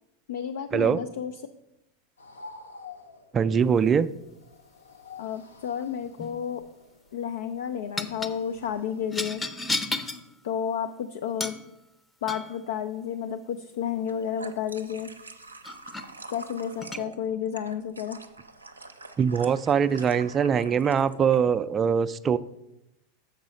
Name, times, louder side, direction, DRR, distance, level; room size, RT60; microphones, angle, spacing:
voice 1, 0.3-1.4 5.2-6.6 7.1-9.4 10.4-11.6 12.2-15.1 16.3-18.2, left 8 dB, 65° left, 10 dB, 0.4 m, -31 dB
sound 1, 2.2-9.1, left 4 dB, 80° left, 0.7 m, -49 dB
voice 2, 3.3-4.1 19.2-22.4, right 7 dB, 25° right, 15 dB, 0.3 m, -22 dB
sound 2, 6.0-6.4 8.0-8.4 9.1-10.2 11.4-11.7 12.3-12.6 15.0-15.1 15.6-16.1 16.8-17.0, left 2 dB, 10° left, 0.7 m, -32 dB
sound 3, 13.9-21.4, right 2 dB, 85° right, 0.5 m, -44 dB
7.2 x 5.4 x 5.2 m, 0.87 s
figure-of-eight pair, 85°, 0 cm